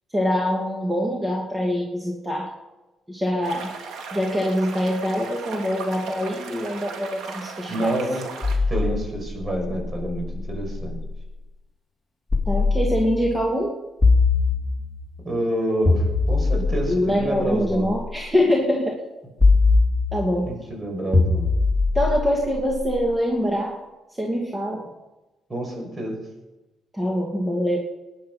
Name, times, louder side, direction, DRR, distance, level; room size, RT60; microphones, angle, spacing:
voice 1, 0.1-2.5 3.1-3.8 4.1-7.9 12.5-13.7 16.9-19.0 20.1-20.5 21.9-23.8 24.2-24.8 26.9-27.8, equal, 15° right, -1 dB, 2.6 m, -24 dB
sound 1, 3.4-8.6, right 5 dB, 85° right, 2.6 m, -37 dB
voice 2, 7.7-8.3 8.7-11.0 15.2-17.9 20.5-21.5 25.5-26.2, right 1 dB, 30° right, 2 dB, 6.3 m, -28 dB
sound 2, 8.4-11.2 12.3-13.3 14.0-15.1 15.8-18.1 19.4-20.5 21.1-23.3, left 3 dB, 10° left, 3.9 m, -22 dB
19.5 x 10.5 x 5.7 m, 1.1 s
cardioid pair, 90°, 0 cm